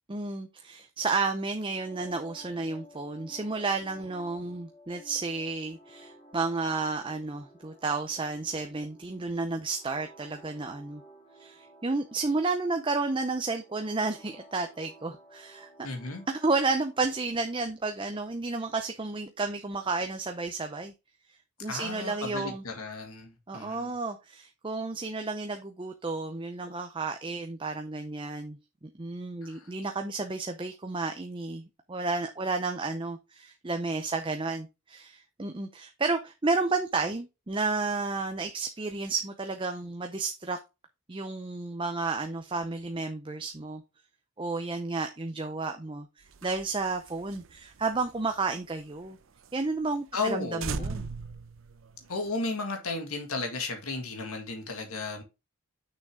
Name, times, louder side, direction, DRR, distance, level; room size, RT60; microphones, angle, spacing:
voice 1, 0.1-11.0 11.4-15.7 16.3-20.9 21.6-22.6 23.5-28.6 29.0-31.6 31.9-40.6 41.1-43.8 44.4-49.2 49.5-51.1, right 3 dB, 25° right, 0.6 m, -32 dB
sound 1, 1.5-17.4, right 1 dB, 20° left, 2.8 m, -55 dB
voice 2, 15.8-16.2 21.7-23.9 29.4-29.7 50.1-50.9 52.1-55.2, left 3 dB, 80° left, 1.8 m, -34 dB
sound 2, 46.2-49.1 49.4-49.5 49.8-49.9 50.2-50.3 50.6-52.3, right 4 dB, 60° right, 0.7 m, -39 dB
6.6 x 6.1 x 3.6 m
head